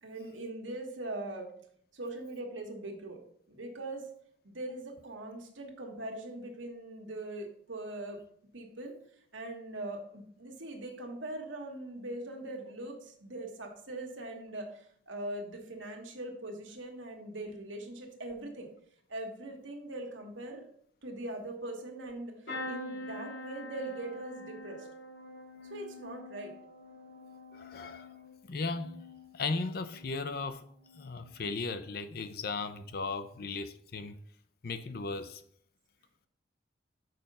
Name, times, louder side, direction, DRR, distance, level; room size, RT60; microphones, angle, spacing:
voice 1, 0.0-1.5 1.9-3.2 3.5-4.1 4.4-8.2 8.5-9.0 9.3-18.7 19.1-20.7 21.0-22.4 22.7-24.9 25.7-26.6, right 1 dB, 85° right, 1.6 m, -41 dB
sound 1, 22.5-30.3 30.7-31.3 32.5-32.7 33.0-33.1, left 2 dB, 80° left, 3.7 m, -45 dB
voice 2, 27.5-28.1 28.4-29.0 29.3-30.6 31.0-34.2 34.6-35.4, left 3 dB, 50° left, 0.6 m, -36 dB
6.6 x 5.2 x 5.4 m
head